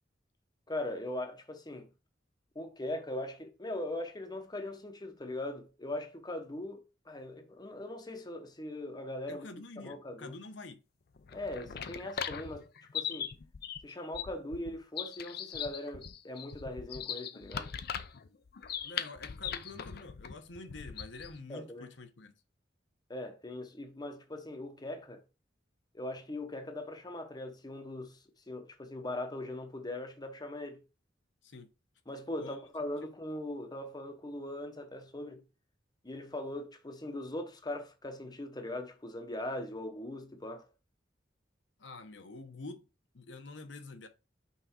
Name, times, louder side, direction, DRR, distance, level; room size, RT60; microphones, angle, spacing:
voice 1, 0.7-1.9 2.5-9.5 9.8-10.4 11.3-12.7 12.9-13.3 13.8-17.7 21.5-21.9 23.1-25.2 25.9-30.8 32.1-35.4 36.0-40.7, left 1 dB, 20° left, 0.9 m, -40 dB
voice 2, 9.3-10.8 18.8-22.3 31.4-31.7 32.4-32.6 41.8-42.9 43.1-44.1, left 2 dB, 75° left, 0.9 m, -47 dB
sound 1, 11.2-21.4, left 8 dB, 55° left, 0.5 m, -40 dB
5.7 x 3.8 x 4.3 m
head